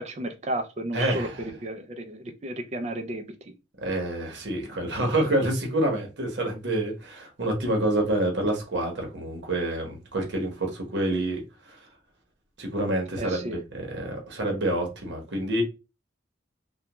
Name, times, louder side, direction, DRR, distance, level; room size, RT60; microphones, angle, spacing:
voice 1, 0.0-3.5 13.2-13.6, right 1 dB, 35° right, 0.3 m, -33 dB
voice 2, 0.9-1.4 3.8-11.8 12.6-15.6, right 1 dB, 65° right, 0.9 m, -27 dB
2.2 x 2.2 x 2.9 m
head